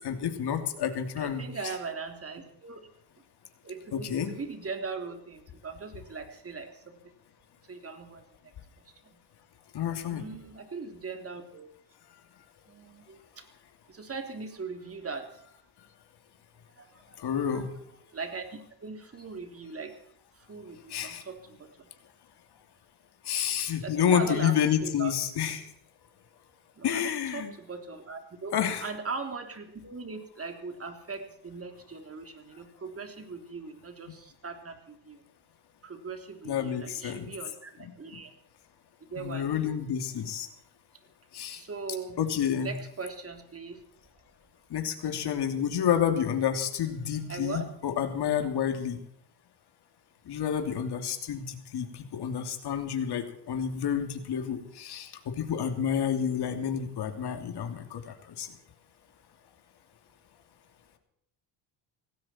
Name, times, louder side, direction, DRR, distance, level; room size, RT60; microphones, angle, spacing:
voice 1, 0.0-1.4 3.9-4.3 9.7-10.3 17.2-17.7 20.9-21.2 23.2-25.7 26.8-27.5 28.5-28.8 36.4-37.3 37.8-37.9 39.2-40.5 41.3-41.6 42.2-42.7 44.7-49.0 50.3-58.5, left 8 dB, 60° left, 5 dB, 3.0 m, -29 dB
voice 2, 1.2-2.8 3.6-7.1 7.7-8.3 8.8-9.2 10.1-11.7 12.7-13.5 13.9-15.5 16.8-17.6 18.1-19.9 20.3-21.9 23.8-25.1 26.7-35.2 35.8-38.3 39.0-39.6 41.5-42.2 42.6-43.8 47.3-47.7, right 4 dB, 30° right, 5 dB, 3.3 m, -40 dB
18.5 x 16.5 x 4.5 m, 0.72 s
cardioid pair, 105°, 44 cm